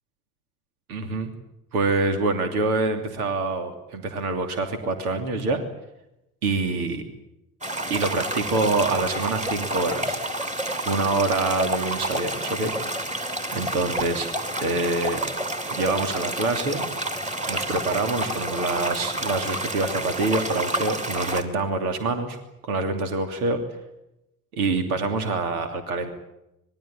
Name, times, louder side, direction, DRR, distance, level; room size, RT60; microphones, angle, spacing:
voice 1, 0.9-1.3 1.7-5.6 6.4-7.0 7.9-10.2 10.8-13.2 13.5-14.3 14.6-15.2 15.7-16.8 17.4-22.4 22.6-23.6 24.5-26.1, right 3 dB, 75° right, 7 dB, 2.9 m, -26 dB
sound 1, 7.6-21.4, right 1 dB, 15° right, 3.6 m, -29 dB
26.0 x 21.5 x 8.8 m, 0.89 s
figure-of-eight pair, 65°, 44 cm